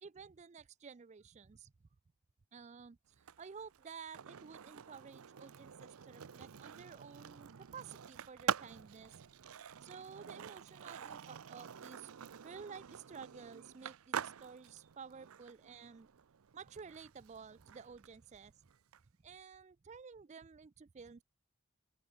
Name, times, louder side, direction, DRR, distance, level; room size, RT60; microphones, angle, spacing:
voice 1, 0.0-1.7 2.5-9.2 9.8-12.1 12.4-16.1 16.5-18.7 19.2-21.2, right 6 dB, 35° right, 0.4 m, -52 dB
Skateboard, 3.1-19.0, right 8 dB, 85° right, 0.6 m, -46 dB
open air
head